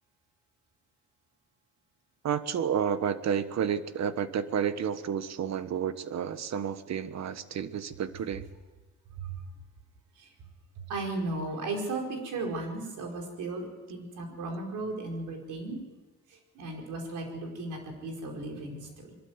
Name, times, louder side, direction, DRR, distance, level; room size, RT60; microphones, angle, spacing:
voice 1, 2.2-8.5, right 8 dB, 60° right, 12 dB, 1.4 m, -31 dB
voice 2, 10.9-15.8 16.5-19.1, right 2 dB, 80° right, 2 dB, 5.0 m, -35 dB
22.5 x 13.0 x 9.6 m, 1.2 s
cardioid pair, 90°, 30 cm